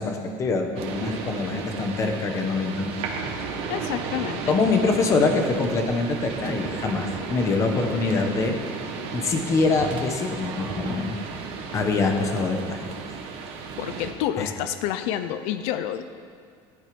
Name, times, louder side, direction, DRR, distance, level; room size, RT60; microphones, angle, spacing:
voice 1, 0.0-2.9 4.5-8.5 9.1-11.2 11.7-12.9 14.4-14.5, left 3 dB, 25° left, 4 dB, 1.3 m, -24 dB
sound 1, 0.8-14.1, right 5 dB, 55° right, 1.6 m, -34 dB
voice 2, 3.7-4.6 13.8-16.0, left 11 dB, 65° left, 10 dB, 0.7 m, -29 dB
14.5 x 11.5 x 5.2 m, 2.1 s
cardioid pair, 165°, 12 cm